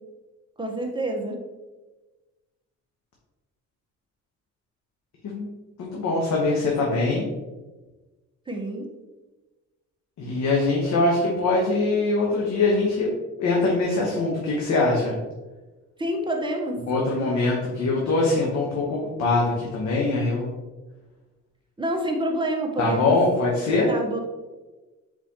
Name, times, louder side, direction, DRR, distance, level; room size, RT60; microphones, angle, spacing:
voice 1, 0.6-1.4 8.5-8.9 16.0-16.8 21.8-23.2 23.9-24.2, right 1 dB, 15° right, 1 dB, 0.9 m, -27 dB
voice 2, 5.8-7.3 10.2-13.1 13.4-15.2 16.9-20.5 22.8-23.9, left 3 dB, 65° left, -2 dB, 1.0 m, -23 dB
4.4 x 4.3 x 2.8 m, 1.2 s
cardioid pair, 90°, 30 cm